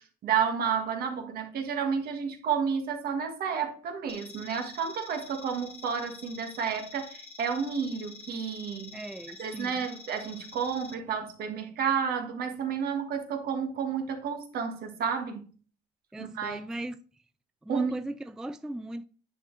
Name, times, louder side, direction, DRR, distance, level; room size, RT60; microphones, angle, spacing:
voice 1, 0.0-9.0 9.4-15.5 16.2-16.6 17.7-17.9, right 6 dB, 65° right, 1.6 m, -31 dB
sound 1, 4.1-10.9, left 4 dB, 35° left, 1.1 m, -48 dB
voice 2, 8.9-9.7 16.1-17.0 17.6-19.0, right 1 dB, 5° right, 0.3 m, -38 dB
9.8 x 4.1 x 3.2 m
cardioid pair, 110°, 17 cm